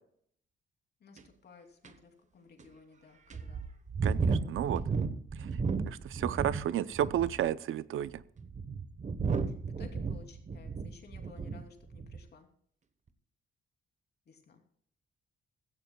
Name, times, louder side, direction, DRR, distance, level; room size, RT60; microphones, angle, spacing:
voice 1, 1.0-3.7 6.3-6.9 9.7-12.5 14.3-14.6, left 4 dB, 50° left, 3 dB, 2.9 m, -56 dB
sound 1, 1.2-1.3 1.8-1.9 2.6-2.7 3.3-6.7 7.0-7.5 8.2-11.6 11.9-12.3, right 5 dB, 35° right, 1.1 m, -33 dB
voice 2, 4.0-4.8 5.9-8.2, right 11 dB, 75° right, 16 dB, 0.6 m, -32 dB
16.5 x 14.5 x 2.3 m, 0.63 s
cardioid pair, 120°, 21 cm